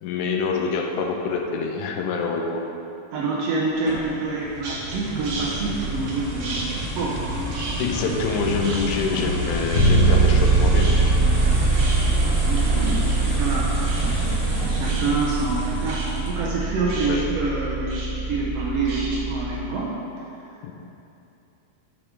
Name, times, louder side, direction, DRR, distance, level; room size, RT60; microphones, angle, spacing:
voice 1, 0.0-2.6 7.8-11.0 17.0-17.3 20.6-20.7, left 5 dB, 80° left, 2 dB, 1.9 m, -26 dB
voice 2, 3.1-7.2 12.5-14.2 14.6-19.9, right 3 dB, 85° right, -5 dB, 1.3 m, -27 dB
sound 1, 3.9-16.6, right 1 dB, 40° right, 1.1 m, -28 dB
sound 2, 4.6-5.0 5.2-6.1 6.4-8.4 8.6-9.4 9.7-10.5 10.7-19.2, right 3 dB, 60° right, 1.7 m, -35 dB
Bass guitar, 9.7-19.6, right 3 dB, 55° left, 2.2 m, -22 dB
7.9 x 6.5 x 3.7 m, 2.8 s
omnidirectional pair, 3.9 m